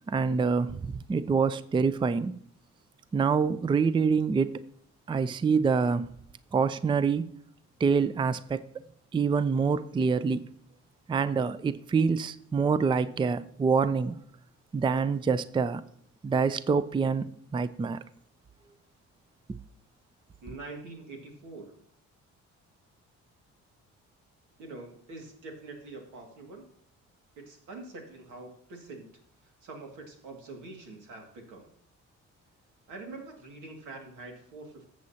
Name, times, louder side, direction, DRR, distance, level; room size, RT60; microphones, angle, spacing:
voice 1, 0.1-2.4 3.1-4.6 5.1-6.1 6.5-7.3 7.8-8.7 9.1-10.4 11.1-14.2 14.7-15.8 16.2-18.0, right 5 dB, 15° right, 0.4 m, -26 dB
voice 2, 20.4-21.8 24.6-26.6 27.4-29.1 29.6-31.7 32.9-34.9, right 3 dB, 90° right, 2.2 m, -44 dB
14.0 x 7.6 x 2.8 m
cardioid pair, 90°, 30 cm